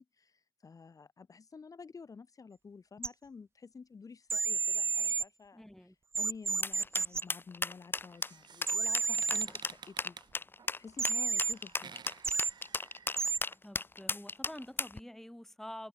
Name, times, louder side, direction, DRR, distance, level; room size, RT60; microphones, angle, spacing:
voice 1, 0.0-5.6 6.1-10.2 10.8-11.9, left 5 dB, 50° left, 1.3 m, -50 dB
sound 1, 3.0-3.1 4.3-5.2 6.1-7.2 8.6-9.5 11.0-11.5 12.2-12.5 13.2-13.4, right 4 dB, 35° right, 0.4 m, -31 dB
voice 2, 5.5-5.9 13.6-15.9, left 1 dB, 5° left, 1.2 m, -47 dB
sound 2, 6.6-15.0, left 3 dB, 30° left, 0.7 m, -35 dB
sound 3, 8.0-13.5, right 7 dB, 75° right, 1.4 m, -53 dB
wide cardioid pair, 90°, 7 cm